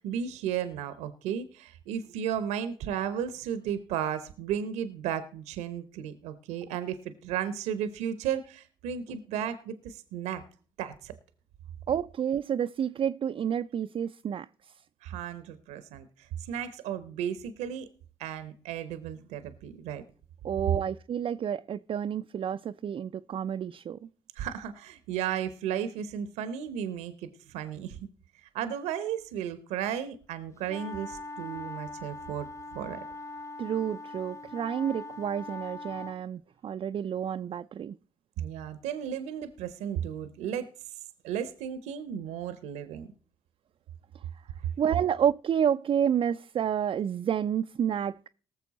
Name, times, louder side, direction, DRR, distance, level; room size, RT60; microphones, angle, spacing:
voice 1, 0.0-10.4 10.8-11.1 15.0-17.9 18.2-20.0 24.4-28.0 28.4-32.5 32.7-33.0 38.4-40.7 41.2-43.1, right 9 dB, 80° right, 0.8 m, -34 dB
voice 2, 11.9-14.5 20.4-24.0 33.6-37.9 44.8-48.3, right 8 dB, 50° right, 0.4 m, -29 dB
sound 1, 30.7-36.2, left 2 dB, 25° left, 0.8 m, -41 dB
19.0 x 6.9 x 4.1 m
hypercardioid pair, 45°, 11 cm